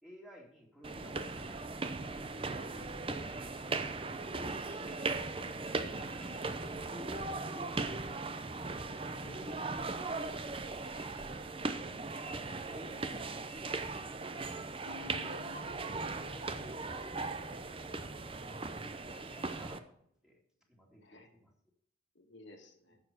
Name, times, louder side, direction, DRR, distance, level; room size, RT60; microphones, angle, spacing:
voice 1, 0.0-3.1 5.9-8.2 12.1-13.8 15.0-15.4 16.0-17.6 18.2-20.4 20.7-21.5 22.9-23.0, left 1 dB, 5° right, -1 dB, 2.5 m, -57 dB
sound 1, 0.8-19.8, right 3 dB, 30° right, 0.7 m, -38 dB
voice 2, 9.1-10.3 21.0-21.3 22.2-23.0, left 1 dB, 75° left, 2 dB, 1.9 m, -57 dB
sound 2, 14.9-18.4, left 1 dB, 50° right, 3.5 m, -51 dB
10.5 x 7.0 x 6.7 m, 0.67 s
head